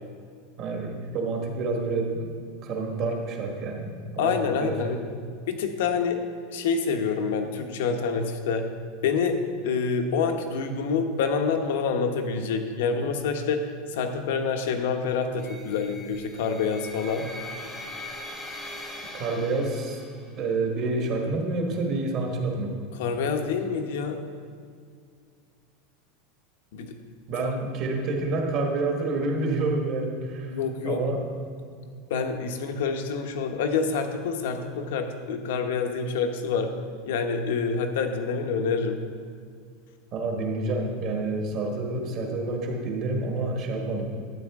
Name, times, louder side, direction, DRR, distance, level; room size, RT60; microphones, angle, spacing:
voice 1, 0.6-2.3 2.6-4.9 19.1-20.0 20.4-22.7 27.3-30.5 30.8-31.2 40.1-44.1, right 3 dB, 35° right, 1 dB, 1.4 m, -28 dB
voice 2, 4.2-5.0 5.5-6.2 6.5-8.7 9.0-17.3 23.0-24.2 26.7-27.0 27.4-27.5 30.5-31.0 32.1-36.7 37.1-39.0, left 5 dB, 70° left, 5 dB, 1.0 m, -27 dB
sound 1, 15.4-20.4, left 1 dB, 5° left, 0.9 m, -41 dB
12.0 x 9.0 x 3.6 m, 2.2 s
supercardioid pair, 175°, 0 cm